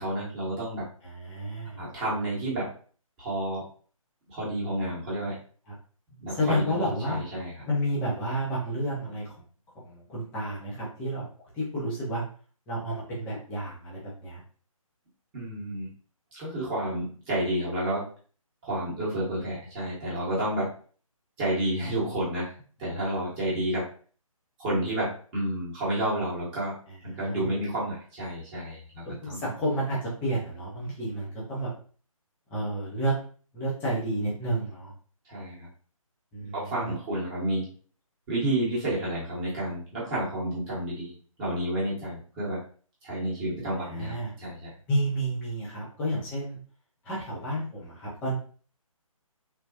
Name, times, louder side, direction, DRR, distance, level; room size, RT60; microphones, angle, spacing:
voice 1, 0.0-0.9 1.8-2.7 3.2-3.6 4.3-5.4 6.1-6.7 7.1-7.5 15.3-15.9 16.4-18.1 18.6-20.7 21.4-22.5 22.8-23.9 24.6-26.8 27.2-29.4 35.2-35.7 36.4-37.7 38.3-42.6 43.0-44.7, right 1 dB, 15° right, -7 dB, 1.1 m, -30 dB
voice 2, 1.0-1.8 5.7-5.8 6.3-7.2 7.7-9.4 9.8-11.2 11.5-12.2 12.7-14.4 26.9-27.6 29.0-31.7 32.5-33.1 33.5-34.9 36.3-37.0 43.8-44.3 44.9-46.6 47.0-48.4, equal, 5° left, -8 dB, 0.6 m, -31 dB
3.4 x 2.2 x 2.7 m, 0.41 s
figure-of-eight pair, 145°, 18 cm